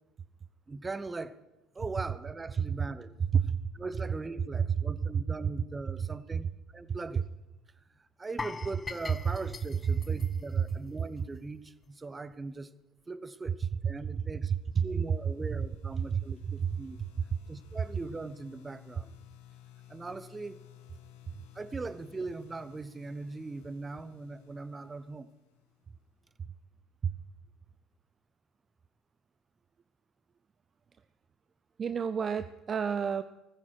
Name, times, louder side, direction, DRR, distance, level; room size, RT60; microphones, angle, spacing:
voice 1, 0.7-1.4 1.7-3.1 3.7-7.2 8.2-12.7 13.1-17.0 17.5-19.1 19.9-20.6 21.5-25.3, right 3 dB, 25° right, 16 dB, 1.0 m, -40 dB
sound 1, 8.4-11.4 11.7-11.9 12.3-12.4, left 4 dB, 25° left, 0.6 m, -42 dB
sound 2, 14.3-26.1, left 12 dB, 75° left, 1.7 m, -57 dB
voice 2, 16.1-16.8 27.0-27.1 31.8-33.2, right 7 dB, 40° right, 13 dB, 0.5 m, -30 dB
18.5 x 15.0 x 4.6 m, 1.0 s
hypercardioid pair, 60°, 0 cm